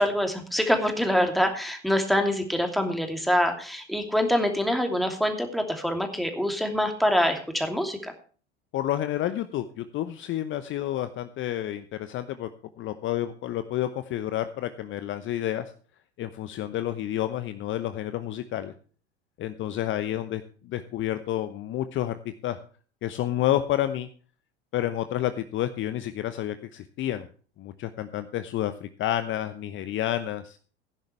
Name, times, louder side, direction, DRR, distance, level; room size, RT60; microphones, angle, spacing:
voice 1, 0.0-8.1, equal, ahead, 4 dB, 2.7 m, -25 dB
voice 2, 8.7-12.5 12.8-15.7 16.2-18.7 19.4-22.2 22.4-22.6 23.0-24.1 24.7-27.3 27.6-30.6, left 12 dB, 35° left, 10 dB, 0.9 m, -30 dB
16.5 x 10.5 x 3.2 m, 0.41 s
figure-of-eight pair, 75°, 34 cm